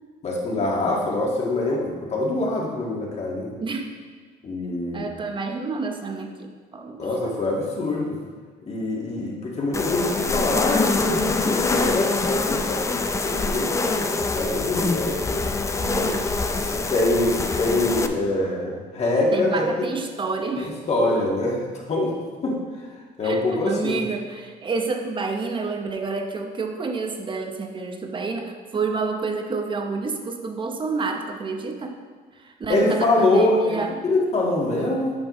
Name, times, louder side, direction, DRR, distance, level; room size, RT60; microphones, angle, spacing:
voice 1, 0.2-3.5 4.4-5.1 7.0-8.2 8.7-15.5 15.9-16.2 16.5-19.7 20.6-22.1 22.4-22.6 23.2-24.0 32.7-35.1, left 2 dB, 40° left, -3 dB, 1.7 m, -24 dB
voice 2, 3.6-3.9 4.9-7.4 15.8-16.3 19.3-20.7 21.0-21.1 23.2-32.0 32.3-34.0, right 4 dB, 30° right, 4 dB, 0.8 m, -29 dB
sound 1, 9.7-18.1, left 3 dB, 15° left, 0.4 m, -24 dB
8.8 x 5.5 x 3.1 m, 1.5 s
cardioid pair, 110°, 17 cm